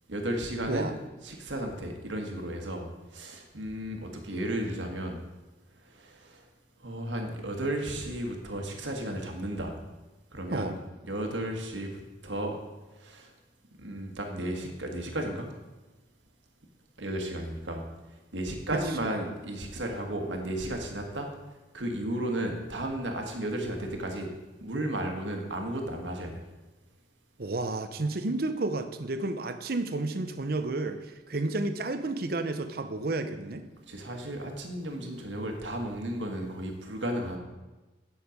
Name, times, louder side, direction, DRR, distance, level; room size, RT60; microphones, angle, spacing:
voice 1, 0.1-5.2 5.8-6.4 6.8-9.8 10.3-10.7 11.0-12.6 12.9-13.3 13.8-15.5 17.0-17.9 18.3-21.3 21.7-24.3 24.6-26.3 33.9-37.4, right 1 dB, 85° right, 2 dB, 1.6 m, -34 dB
voice 2, 27.4-33.7, right 2 dB, 55° right, 9 dB, 0.7 m, -31 dB
9.9 x 6.5 x 5.1 m, 1.1 s
head